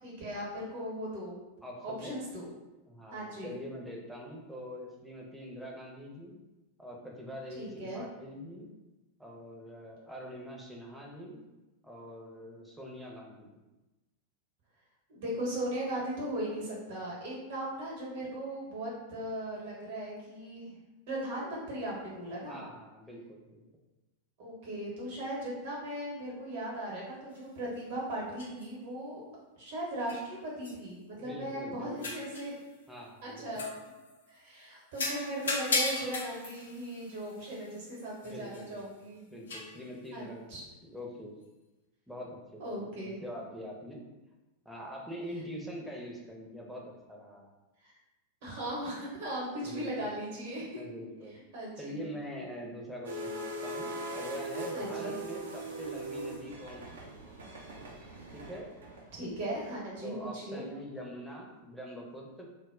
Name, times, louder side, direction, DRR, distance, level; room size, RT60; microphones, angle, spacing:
voice 1, 0.0-1.4 1.8-2.5 3.1-3.5 7.6-8.0 15.1-20.8 21.1-22.6 24.4-29.2 29.6-32.6 33.2-33.6 34.3-39.2 40.1-40.6 42.6-43.2 47.8-47.9 48.4-50.8 51.5-52.0 54.7-55.2 58.0-58.1 59.2-60.6, right 1 dB, 50° right, -4 dB, 0.9 m, -38 dB
voice 2, 1.6-2.2 2.9-6.4 6.8-8.7 9.2-11.4 11.8-13.5 22.5-23.6 31.2-32.1 32.9-33.6 38.2-38.8 39.3-41.3 42.1-44.0 44.7-47.4 49.6-50.1 50.8-51.4 51.8-57.3 58.3-58.7 60.0-62.5, equal, ahead, -2 dB, 0.5 m, -44 dB
sound 1, 27.3-27.4 28.4-28.7 30.1-30.3 30.6-30.8 32.0-32.6 33.5-34.3 34.9-38.8 39.5-39.8, left 3 dB, 65° left, 0.4 m, -36 dB
sound 2, 53.0-59.4, right 1 dB, 65° right, 0.4 m, -40 dB
2.1 x 2.0 x 3.6 m, 1.1 s
figure-of-eight pair, 90°, 0 cm